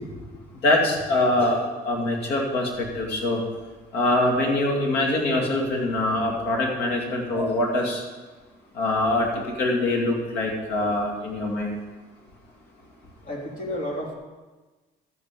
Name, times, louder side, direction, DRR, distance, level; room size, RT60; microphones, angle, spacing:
voice 1, 0.6-1.6 1.8-3.4 3.9-8.0 8.8-9.3 9.6-11.7, left 2 dB, 80° left, 1 dB, 2.5 m, -23 dB
voice 2, 13.2-14.1, left 1 dB, 50° left, -1 dB, 3.0 m, -31 dB
12.5 x 8.3 x 5.0 m, 1.3 s
cardioid pair, 110°, 17 cm